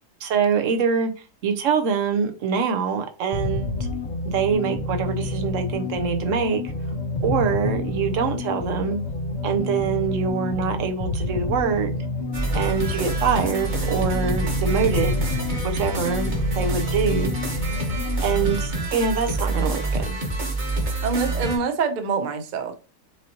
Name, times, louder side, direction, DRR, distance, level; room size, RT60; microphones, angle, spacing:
voice 1, 0.2-1.1 1.4-3.9 4.3-6.6 7.2-9.0 9.4-11.9 12.5-15.2 15.6-17.3 18.2-20.1, right 6 dB, 65° right, 0.9 m, -24 dB
sound 1, 3.3-18.7, left 2 dB, 40° left, 0.6 m, -29 dB
sound 2, 12.3-21.6, right 2 dB, 35° right, 1.2 m, -27 dB
voice 2, 18.4-18.9 21.0-22.7, right 5 dB, 85° right, 0.4 m, -26 dB
6.1 x 2.8 x 2.8 m
omnidirectional pair, 1.7 m